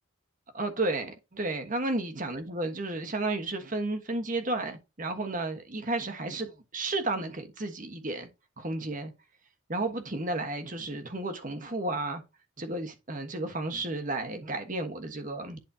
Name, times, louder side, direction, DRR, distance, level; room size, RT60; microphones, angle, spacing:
voice 1, 0.5-8.3 8.6-9.1 9.7-12.2 12.6-15.6, right 2 dB, 40° right, 1.3 m, -32 dB
10.5 x 4.2 x 2.8 m
head